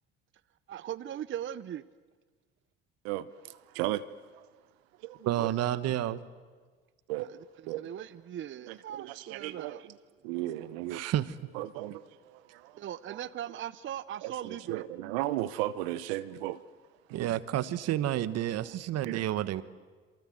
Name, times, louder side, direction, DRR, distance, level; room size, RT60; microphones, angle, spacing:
voice 1, 0.7-1.8 7.2-7.4 7.8-9.9 12.8-14.9, right 10 dB, 40° right, 0.7 m, -39 dB
voice 2, 3.0-4.0 4.3-4.5 5.0-5.5 7.1-7.3 7.7-7.9 8.7-9.9 10.2-11.0 11.5-13.2 14.2-16.6 19.0-19.2, right 15 dB, 80° right, 0.9 m, -36 dB
voice 3, 5.2-6.2 10.9-11.5 17.1-19.6, right 12 dB, 60° right, 1.4 m, -30 dB
27.5 x 24.0 x 7.7 m
hypercardioid pair, 70°, 29 cm